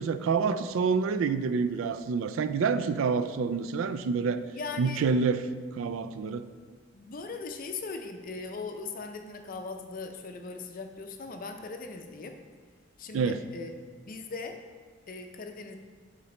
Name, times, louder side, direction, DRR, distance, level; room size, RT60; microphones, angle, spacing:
voice 1, 0.0-4.4 4.8-5.5 5.7-6.4 13.1-13.4, right 5 dB, 85° right, 12 dB, 0.3 m, -27 dB
voice 2, 4.5-5.0 6.9-12.3 13.0-13.7 14.0-14.6 15.1-15.8, left 4 dB, 45° left, 5 dB, 0.5 m, -39 dB
8.5 x 4.0 x 3.2 m, 1.5 s
head